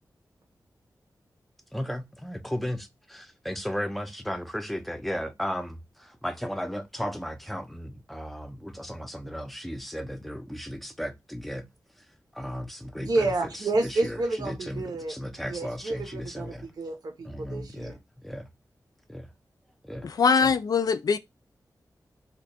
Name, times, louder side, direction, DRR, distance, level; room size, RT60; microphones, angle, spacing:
voice 1, 1.7-11.7 12.3-13.3 13.8-16.7 17.3-18.5 19.1-19.3 19.8-20.1 20.4-20.5, equal, ahead, 0.5 m, -35 dB
voice 2, 13.0-15.1 15.4-18.0, right 2 dB, 70° right, 0.7 m, -30 dB
voice 3, 20.0-21.2, left 5 dB, 65° left, 0.3 m, -22 dB
2.8 x 2.2 x 4.1 m
wide cardioid pair, 120°, 7 cm